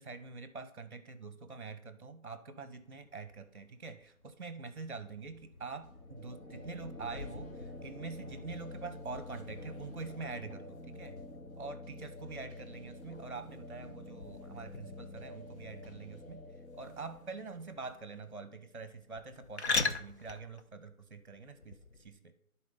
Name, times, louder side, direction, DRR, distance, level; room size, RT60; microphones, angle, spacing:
voice 1, 0.0-11.1 11.6-16.4 16.7-22.3, right 4 dB, 50° right, 10 dB, 0.8 m, -45 dB
Thunder / Rain, 2.8-11.0, left 2 dB, 30° left, 1.1 m, -54 dB
sound 1, 5.8-19.5, left 2 dB, 70° left, 1.7 m, -49 dB
sound 2, 7.0-22.1, left 3 dB, 50° left, 0.7 m, -43 dB
11.5 x 4.2 x 5.3 m, 0.67 s
figure-of-eight pair, 175°, 43 cm